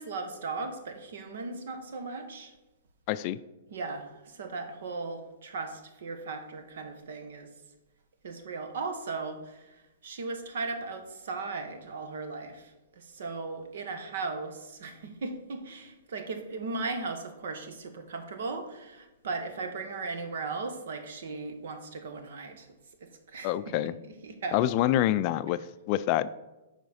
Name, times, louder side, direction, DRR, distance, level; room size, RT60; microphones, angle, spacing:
voice 1, 0.0-2.5 3.7-7.5 8.2-22.7 23.0-23.5 24.0-24.6, right 3 dB, 70° right, 6 dB, 1.3 m, -37 dB
voice 2, 3.1-3.4 23.4-23.9 24.5-25.6 25.9-26.3, left 13 dB, 40° left, 14 dB, 0.3 m, -26 dB
8.5 x 5.1 x 4.1 m, 1.0 s
hypercardioid pair, 135°, 0 cm